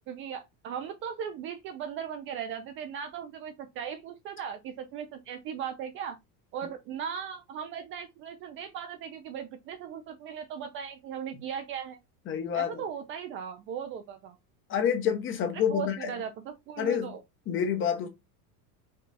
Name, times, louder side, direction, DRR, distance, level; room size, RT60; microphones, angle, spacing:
voice 1, 0.1-6.2 6.5-12.0 12.5-14.4 15.5-17.2, right 8 dB, 30° right, 0.4 m, -38 dB
voice 2, 12.3-12.8 14.7-16.1 16.8-17.1 17.5-18.1, left 8 dB, 25° left, 0.9 m, -28 dB
5.3 x 2.3 x 4.0 m
supercardioid pair, 150°, 44 cm